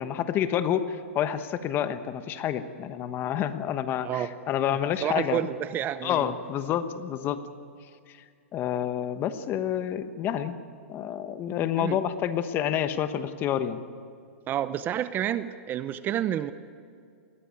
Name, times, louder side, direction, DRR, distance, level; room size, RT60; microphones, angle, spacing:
voice 1, 0.0-5.4 6.0-7.4 8.1-8.2 8.5-10.6 10.9-13.8, left 10 dB, 30° left, 11 dB, 1.2 m, -28 dB
voice 2, 5.0-6.3 11.8-12.0 14.5-16.5, right 11 dB, 25° right, 14 dB, 0.7 m, -29 dB
20.5 x 16.5 x 9.6 m, 2.3 s
hypercardioid pair, 135°, 7 cm